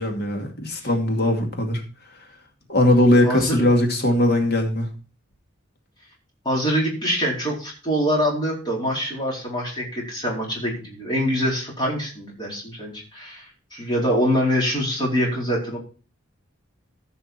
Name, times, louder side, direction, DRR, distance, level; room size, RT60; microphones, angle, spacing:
voice 1, 0.0-1.8 2.7-4.9, left 1 dB, 50° left, 3 dB, 2.4 m, -20 dB
voice 2, 3.2-3.6 6.4-13.4 13.7-15.8, equal, 20° left, -3 dB, 4.4 m, -24 dB
14.5 x 5.6 x 4.5 m, 0.36 s
head